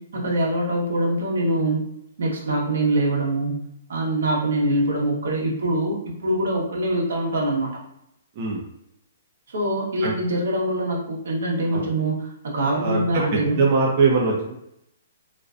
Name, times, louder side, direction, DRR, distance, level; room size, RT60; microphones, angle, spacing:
voice 1, 0.1-1.8 2.2-3.6 3.9-6.0 6.2-7.7 9.5-12.2 12.4-13.6, right 1 dB, 75° right, -2 dB, 0.8 m, -23 dB
voice 2, 12.6-14.5, right 4 dB, 40° right, -3 dB, 0.5 m, -22 dB
2.5 x 2.2 x 2.4 m, 0.79 s
hypercardioid pair, 155°, 0 cm